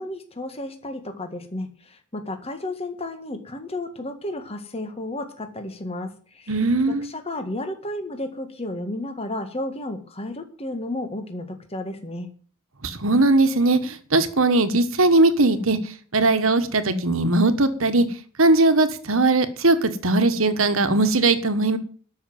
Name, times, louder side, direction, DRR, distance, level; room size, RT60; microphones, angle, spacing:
voice 1, 0.0-12.3, left 1 dB, 25° left, 7 dB, 1.8 m, -33 dB
voice 2, 6.5-7.1 12.8-15.8 16.1-18.0 18.4-21.8, right 2 dB, 65° right, 9 dB, 1.5 m, -19 dB
12.5 x 6.4 x 9.1 m, 0.44 s
head